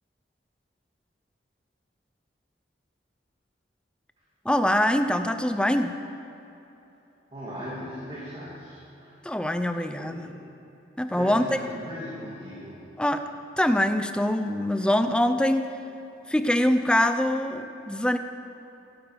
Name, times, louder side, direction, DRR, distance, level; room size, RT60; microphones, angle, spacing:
voice 1, 4.4-6.0 9.2-10.3 11.0-11.6 13.0-13.2 13.6-15.7 16.3-18.2, left 1 dB, 5° left, 8 dB, 0.6 m, -24 dB
voice 2, 7.3-9.1 10.0-10.3 11.1-12.8, equal, 30° right, -8 dB, 2.7 m, -38 dB
15.0 x 13.5 x 5.2 m, 3.0 s
head